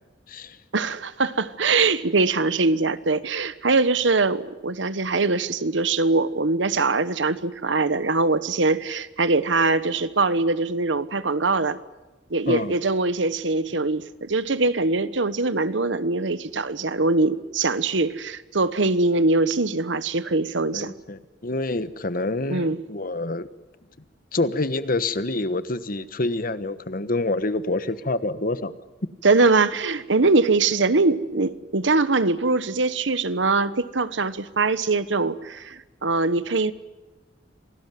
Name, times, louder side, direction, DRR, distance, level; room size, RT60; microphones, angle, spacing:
voice 1, 0.7-11.8 12.3-20.9 22.5-22.8 29.2-36.7, right 3 dB, 80° right, 1.2 m, -22 dB
voice 2, 20.7-23.5 24.3-28.7, left 2 dB, 50° left, 1.3 m, -27 dB
27.0 x 18.5 x 9.3 m
head